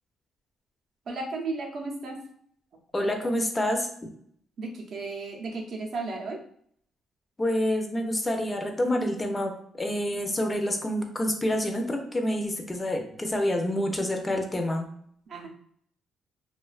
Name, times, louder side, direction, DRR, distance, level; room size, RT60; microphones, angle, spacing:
voice 1, 1.1-2.2 4.6-6.4 15.3-15.5, right 3 dB, 60° right, 0 dB, 0.5 m, -34 dB
voice 2, 2.9-3.9 7.4-14.9, left 1 dB, 20° left, 3 dB, 0.5 m, -27 dB
2.4 x 2.2 x 2.3 m, 0.64 s
cardioid pair, 90°, 0 cm